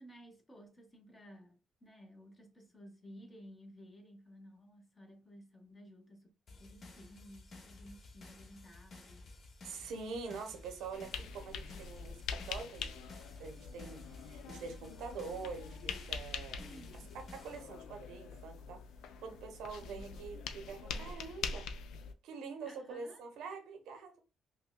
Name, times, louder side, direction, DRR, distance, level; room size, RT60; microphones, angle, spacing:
voice 1, 0.0-9.3 16.6-17.1 19.8-20.2 22.6-23.2, equal, 25° left, 1.0 m, -55 dB
sound 1, 6.5-17.6, left 2 dB, 50° left, 0.9 m, -54 dB
voice 2, 9.6-13.0 13.4-16.6 17.3-18.8 19.2-21.7 22.2-24.2, right 5 dB, 85° right, 0.8 m, -45 dB
sound 2, 10.9-22.1, left 5 dB, 80° left, 0.4 m, -44 dB
5.3 x 2.2 x 2.2 m
cardioid pair, 90°, 0 cm